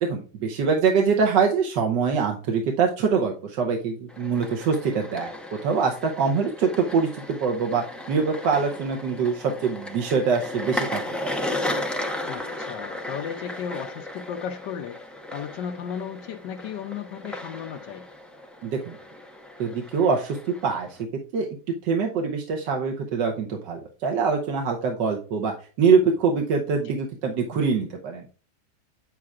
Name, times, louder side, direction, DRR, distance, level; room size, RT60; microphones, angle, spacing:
voice 1, 0.0-5.3 5.6-11.0 18.6-19.0 19.6-21.0 21.3-21.5 21.8-28.2, right 5 dB, 90° right, 1.6 m, -24 dB
sound 1, 4.1-21.0, left 1 dB, ahead, 0.4 m, -35 dB
voice 2, 12.3-15.0 15.3-18.1 26.7-26.9, left 8 dB, 85° left, 1.3 m, -35 dB
8.4 x 7.6 x 2.4 m
omnidirectional pair, 1.9 m